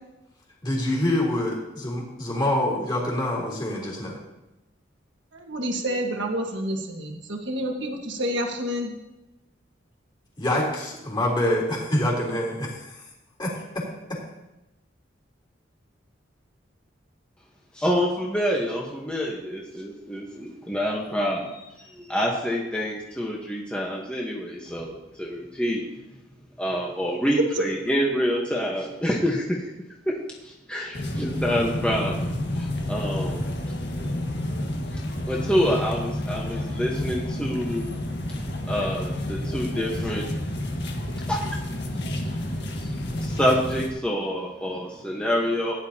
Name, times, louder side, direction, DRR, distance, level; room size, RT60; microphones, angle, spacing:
voice 1, 0.6-4.2 10.4-12.9 13.4-13.8 14.1-14.2, left 1 dB, 25° left, -4 dB, 3.6 m, -26 dB
voice 2, 5.3-8.9 27.6-27.7, equal, 70° right, 2 dB, 1.6 m, -28 dB
voice 3, 17.7-25.8 26.6-29.6 30.0-30.1 30.4-33.4 34.9-37.9 38.7-40.2 41.3-45.7, equal, 5° left, -3 dB, 1.2 m, -27 dB
sound 1, 30.9-43.9, left 1 dB, 60° left, 1.6 m, -30 dB
16.5 x 10.5 x 2.9 m, 0.98 s
head